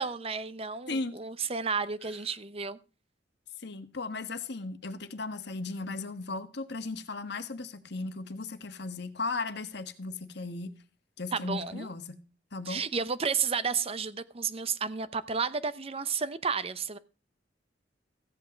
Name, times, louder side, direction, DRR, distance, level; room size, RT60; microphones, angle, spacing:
voice 1, 0.0-2.8 11.3-11.9 12.7-17.0, right 5 dB, 30° right, 0.7 m, -32 dB
voice 2, 0.9-1.2 3.6-10.7 11.2-12.2 12.5-12.8, left 3 dB, 60° left, 1.4 m, -36 dB
15.0 x 8.5 x 5.1 m
head